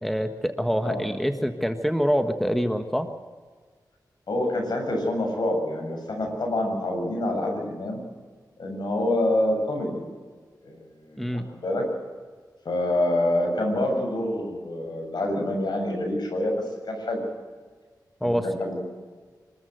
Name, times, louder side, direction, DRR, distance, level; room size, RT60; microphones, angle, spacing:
voice 1, 0.0-3.1 11.2-11.4 18.2-18.4, equal, ahead, 7 dB, 1.5 m, -25 dB
voice 2, 4.3-8.0 8.6-10.0 10.6-11.8 12.6-16.5 16.9-17.2 18.2-18.8, left 1 dB, 70° left, 2 dB, 7.4 m, -26 dB
26.0 x 13.5 x 8.0 m, 1.5 s
wide cardioid pair, 70°, 7 cm